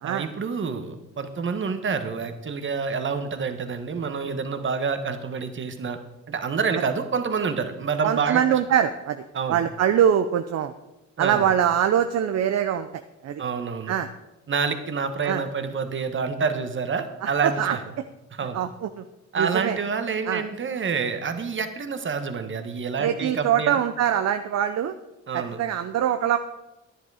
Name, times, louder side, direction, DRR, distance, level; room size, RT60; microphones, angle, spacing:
voice 1, 0.0-6.0 6.3-8.4 9.3-9.6 11.2-11.5 13.4-13.9 14.5-17.8 18.3-18.6 19.3-23.8 25.3-25.6, right 5 dB, 40° right, 8 dB, 1.3 m, -28 dB
voice 2, 8.0-10.7 11.2-13.4 13.9-14.1 15.2-15.4 17.2-17.8 18.5-19.0 19.4-19.8 20.3-20.4 23.0-25.0 25.3-26.4, right 9 dB, 60° right, 9 dB, 0.6 m, -23 dB
10.5 x 10.0 x 4.9 m, 0.99 s
cardioid pair, 90°, 30 cm